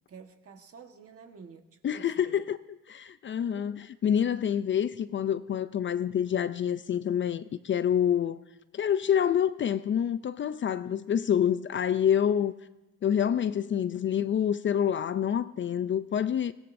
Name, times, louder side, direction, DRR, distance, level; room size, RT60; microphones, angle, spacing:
voice 1, 0.1-2.4 3.4-3.8, right 5 dB, 50° right, 1.4 m, -50 dB
voice 2, 1.8-2.6 2.9-8.4 8.7-12.5 13.0-16.5, left 9 dB, 40° left, 0.4 m, -27 dB
23.0 x 16.0 x 2.6 m
cardioid pair, 90°, 30 cm